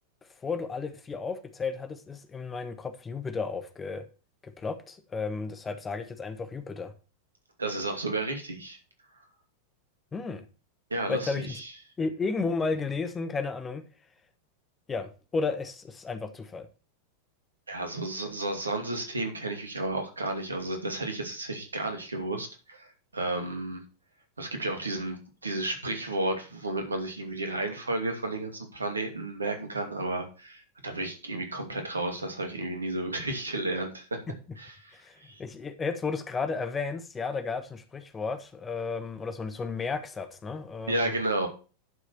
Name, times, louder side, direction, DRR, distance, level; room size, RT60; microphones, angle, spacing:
voice 1, 0.4-4.0 4.4-6.9 10.1-10.4 11.1-11.5 12.0-13.8 14.9-16.7 34.3-34.4 34.9-35.1 35.4-41.1, left 4 dB, 15° left, 1.3 m, -33 dB
voice 2, 7.6-8.8 10.9-11.7 17.7-22.9 23.1-23.8 24.4-34.2 34.6-34.9 35.2-35.4 40.9-41.5, right 2 dB, 75° right, 2.6 m, -32 dB
11.0 x 6.5 x 4.4 m
figure-of-eight pair, 90°, 0 cm